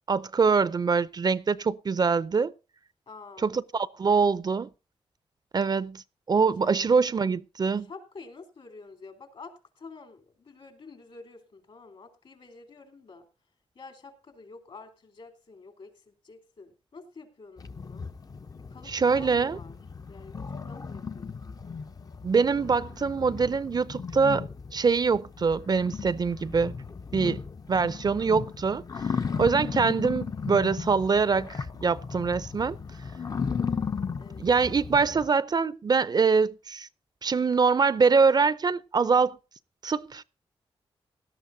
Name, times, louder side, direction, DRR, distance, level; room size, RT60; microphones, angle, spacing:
voice 1, 0.1-2.5 3.4-4.7 5.5-6.0 6.3-7.9 18.9-19.6 22.2-24.5 24.7-26.7 27.1-27.4 27.7-28.8 29.4-32.8 34.4-36.9 37.2-39.4 39.8-40.2, right 5 dB, 40° right, 0.5 m, -24 dB
voice 2, 3.1-3.6 6.6-6.7 7.8-13.3 13.7-18.1 18.7-19.8 20.1-21.6 29.1-29.5 34.2-34.5, left 4 dB, 60° left, 3.4 m, -48 dB
sound 1, 17.6-35.3, left 5 dB, 35° left, 0.6 m, -36 dB
17.5 x 12.5 x 2.7 m
cardioid pair, 90°, 10 cm